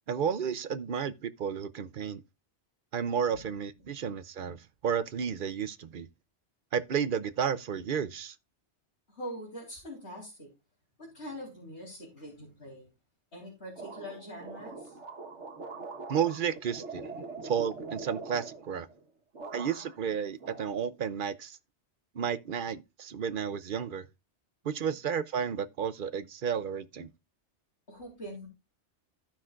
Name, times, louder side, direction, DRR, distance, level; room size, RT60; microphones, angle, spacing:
voice 1, 0.1-2.2 2.9-6.1 6.7-8.3 16.1-17.1 17.4-18.9 19.5-21.6 22.1-24.1 24.6-27.1, right 7 dB, 55° right, 0.8 m, -32 dB
voice 2, 9.1-10.5 11.0-12.9 13.3-15.0 24.8-24.9 27.9-28.5, equal, 60° left, 4.0 m, -43 dB
sound 1, 13.7-19.0 19.3-20.1 20.4-21.3, right 3 dB, 80° right, 1.6 m, -43 dB
15.5 x 5.8 x 2.4 m
omnidirectional pair, 1.2 m